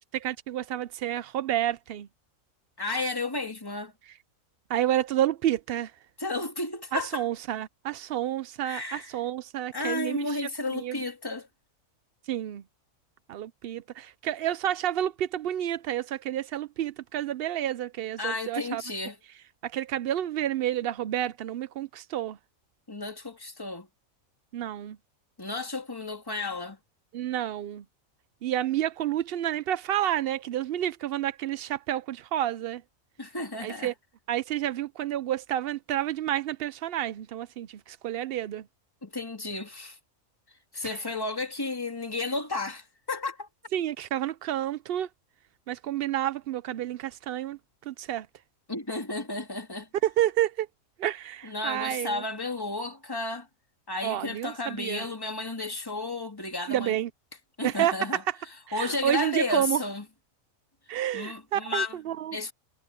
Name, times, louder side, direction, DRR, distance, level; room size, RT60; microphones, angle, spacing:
voice 1, 0.1-2.1 4.7-5.9 6.9-10.4 10.7-11.0 12.3-12.6 13.3-18.8 19.6-22.4 24.5-25.0 27.1-27.8 28.4-32.8 33.6-33.9 34.3-38.6 40.8-41.0 43.7-45.1 45.7-47.6 47.9-48.3 50.0-50.7 51.0-52.2 54.0-55.1 56.7-57.1 57.6-58.4 58.7-59.8 60.9-62.4, right 12 dB, 65° right, 0.6 m, -30 dB
voice 2, 2.8-3.9 6.2-7.2 8.6-9.1 9.7-11.5 18.2-19.2 22.9-23.9 25.4-26.8 33.2-33.9 39.0-40.0 40.7-43.5 48.7-49.9 51.4-53.5 53.9-57.0 57.6-58.2 58.7-60.0 61.1-62.0 62.3-62.5, left 2 dB, 15° left, 2.8 m, -32 dB
omnidirectional pair, 1.4 m